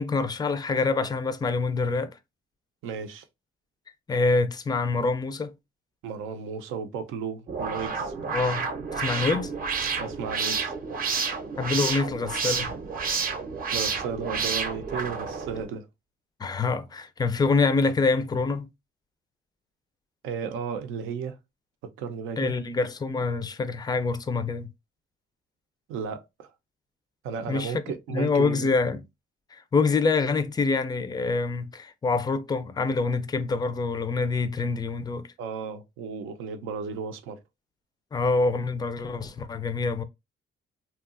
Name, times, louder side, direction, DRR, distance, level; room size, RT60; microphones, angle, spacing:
voice 1, 0.0-2.2 4.1-5.5 8.3-8.7 8.9-9.5 11.6-12.7 16.4-18.7 22.4-24.7 27.5-27.8 28.1-29.0 29.5-35.3 38.1-40.0, left 4 dB, 20° left, 0.4 m, -26 dB
voice 2, 2.8-3.2 6.0-8.2 10.0-10.7 13.7-15.9 20.2-21.4 21.8-22.5 25.9-26.5 27.2-28.7 35.4-37.4, right 6 dB, 90° right, 0.5 m, -34 dB
sound 1, 7.5-15.7, right 5 dB, 45° right, 0.6 m, -30 dB
2.7 x 2.3 x 2.4 m
cardioid pair, 90°, 20 cm